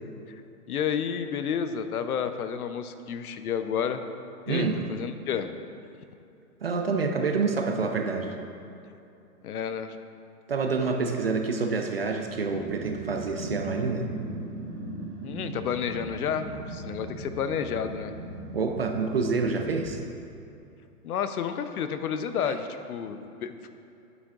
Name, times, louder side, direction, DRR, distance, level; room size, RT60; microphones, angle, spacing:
voice 1, 0.7-4.0 4.5-5.5 9.4-10.0 15.2-18.1 21.0-23.7, left 7 dB, 70° left, 9 dB, 0.7 m, -31 dB
voice 2, 4.5-4.8 6.6-8.4 10.5-14.1 18.5-20.0, right 4 dB, 45° right, 4 dB, 0.4 m, -27 dB
Growling, 12.3-20.0, right 1 dB, 15° right, 0.8 m, -38 dB
11.5 x 9.3 x 2.4 m, 2.7 s
hypercardioid pair, 175°, 46 cm